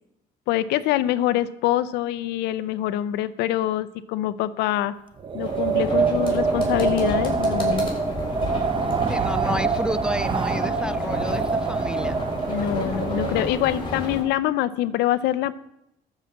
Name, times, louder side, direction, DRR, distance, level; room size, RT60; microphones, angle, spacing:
voice 1, 0.5-4.9 5.3-7.9 12.5-15.5, left 13 dB, 90° left, 15 dB, 0.6 m, -25 dB
Wind, 5.2-13.6, right 5 dB, 30° right, 0.8 m, -25 dB
sound 1, 5.4-14.2, left 2 dB, 30° left, 3.8 m, -32 dB
voice 2, 5.9-6.4 9.1-12.2, equal, 5° right, 15 dB, 0.4 m, -31 dB
13.0 x 4.9 x 7.4 m, 0.85 s
cardioid pair, 110°, 17 cm